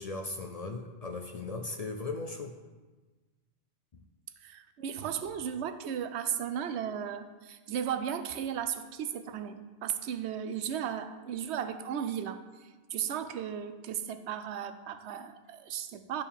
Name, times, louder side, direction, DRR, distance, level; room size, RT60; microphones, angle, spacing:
voice 1, 0.0-2.5, left 3 dB, 50° left, 4 dB, 0.5 m, -37 dB
voice 2, 4.4-12.4 12.9-16.2, right 9 dB, 85° right, 10 dB, 0.9 m, -35 dB
11.5 x 4.5 x 3.5 m, 1.3 s
omnidirectional pair, 1.1 m